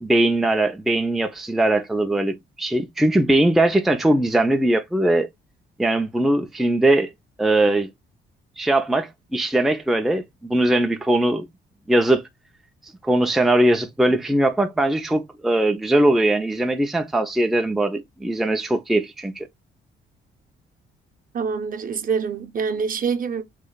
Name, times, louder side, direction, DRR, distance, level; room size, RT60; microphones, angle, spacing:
voice 1, 0.0-5.3 5.8-7.1 7.4-7.9 8.6-11.5 11.9-12.2 13.0-19.5, right 1 dB, ahead, 0.5 m, -20 dB
voice 2, 21.3-23.4, right 6 dB, 45° right, 0.8 m, -25 dB
3.2 x 2.3 x 3.8 m
cardioid pair, 90°, 20 cm